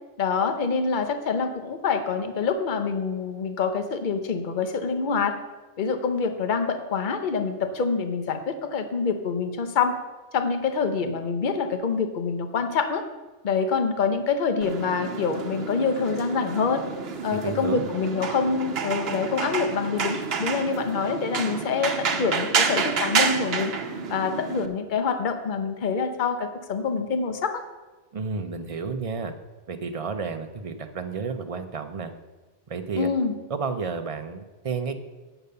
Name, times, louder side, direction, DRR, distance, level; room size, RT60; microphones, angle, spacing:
voice 1, 0.2-5.4 5.8-10.0 10.3-13.0 13.4-16.8 17.2-23.7 24.1-27.6 33.0-33.3, left 5 dB, 50° left, 7 dB, 0.9 m, -26 dB
sound 1, 14.6-24.7, right 5 dB, 70° right, 1.0 m, -29 dB
voice 2, 17.4-17.9 28.1-29.3 29.7-32.1 32.7-33.1 33.5-35.0, right 5 dB, 40° right, 8 dB, 0.6 m, -31 dB
8.0 x 6.9 x 6.7 m, 1.2 s
omnidirectional pair, 1.1 m